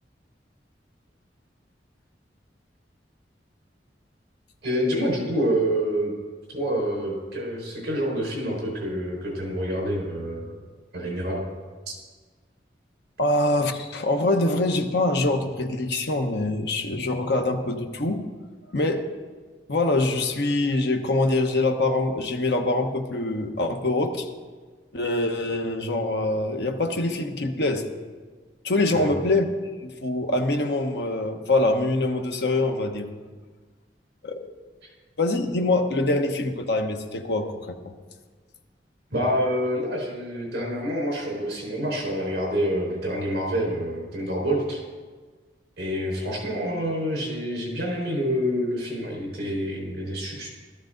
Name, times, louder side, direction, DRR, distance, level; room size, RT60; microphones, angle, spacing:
voice 1, 4.6-6.1 6.5-10.6 10.9-11.4 11.9-12.0 28.9-29.1 39.1-44.8 45.8-50.5, equal, 60° right, -2 dB, 4.7 m, -27 dB
voice 2, 13.2-18.2 18.7-19.1 19.7-24.3 24.9-27.8 28.6-29.5 29.8-33.1 34.2-34.5 35.2-37.9, left 2 dB, 70° left, 4 dB, 1.1 m, -24 dB
14.0 x 13.0 x 3.9 m, 1.4 s
head